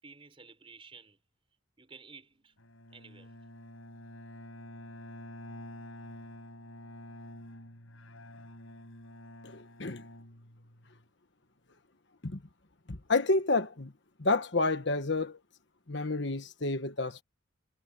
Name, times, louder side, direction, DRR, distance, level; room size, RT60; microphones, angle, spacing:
voice 1, 0.0-1.2 1.8-2.5 2.9-3.3, right 4 dB, 25° right, 4.6 m, -53 dB
Bowed string instrument, 2.6-11.0, left 1 dB, 75° left, 7.5 m, -48 dB
voice 2, 9.4-10.0 12.2-12.4 12.9-13.9 14.2-15.4 15.9-17.2, left 3 dB, 55° left, 1.3 m, -30 dB
head